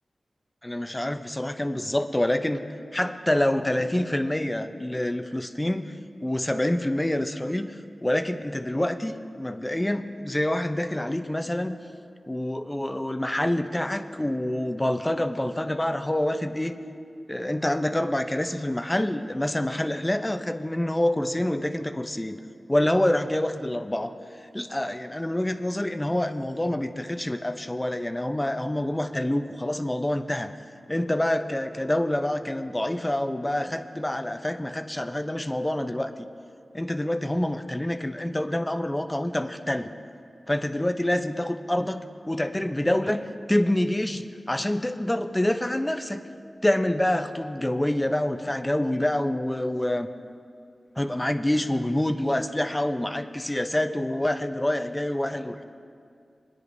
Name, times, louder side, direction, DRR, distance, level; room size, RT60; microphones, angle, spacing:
voice 1, 0.6-2.6 2.9-5.9 6.2-7.7 8.0-11.8 12.3-16.8 17.3-22.4 22.7-24.1 24.5-30.5 30.9-36.3 36.7-39.9 40.5-43.2 43.5-46.2 46.6-50.1 51.0-55.6, left 1 dB, 20° left, 8 dB, 0.6 m, -26 dB
21.0 x 10.0 x 2.7 m, 2.4 s
cardioid pair, 40°, 0 cm